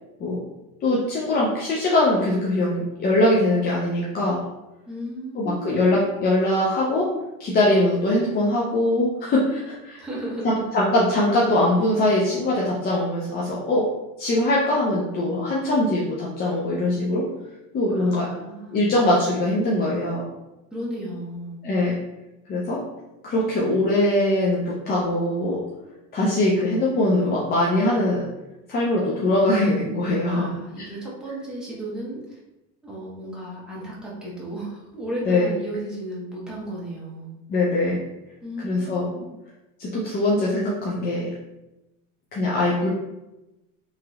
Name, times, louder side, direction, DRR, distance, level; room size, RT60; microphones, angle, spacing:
voice 1, 0.8-4.4 5.4-7.1 7.4-10.0 10.7-13.9 14.2-17.2 17.7-18.3 18.7-20.2 21.6-22.0 22.5-22.8 23.2-25.6 26.1-28.2 28.7-30.5 35.3-35.5 37.5-38.0 38.6-39.1 39.8-41.3 42.3-42.9, left 1 dB, 25° left, -5 dB, 0.5 m, -22 dB
voice 2, 4.9-6.0 10.0-10.6 17.9-18.8 20.7-21.6 30.3-32.4 32.8-37.3 38.4-39.3, right 1 dB, ahead, -7 dB, 0.9 m, -34 dB
3.1 x 2.8 x 2.3 m, 0.98 s
supercardioid pair, 120°, 39 cm